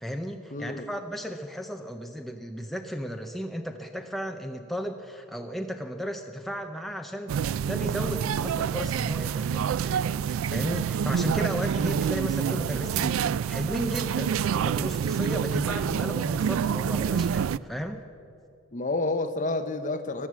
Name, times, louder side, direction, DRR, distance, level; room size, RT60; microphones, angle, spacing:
voice 1, 0.0-18.0, equal, ahead, 0.5 m, -34 dB
voice 2, 0.5-0.9 15.3-15.5 18.7-20.3, left 2 dB, 35° left, 0.8 m, -29 dB
sound 1, 7.3-17.6, right 7 dB, 80° right, 0.3 m, -27 dB
15.0 x 11.0 x 7.4 m
head